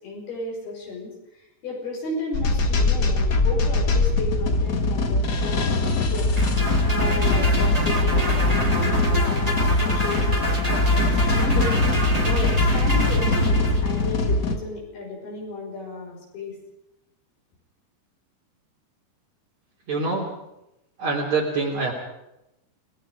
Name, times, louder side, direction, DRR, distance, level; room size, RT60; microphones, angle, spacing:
voice 1, 0.0-1.1 1.6-11.8 12.2-16.5, left 2 dB, 65° left, -2 dB, 7.8 m, -34 dB
sound 1, 2.3-14.6, left 2 dB, 80° left, 0.9 m, -21 dB
sound 2, 6.4-14.1, equal, 10° right, 3.0 m, -29 dB
voice 2, 19.9-20.3 21.0-21.9, right 3 dB, 45° right, -4 dB, 4.2 m, -24 dB
29.5 x 19.5 x 5.1 m, 0.87 s
omnidirectional pair, 4.9 m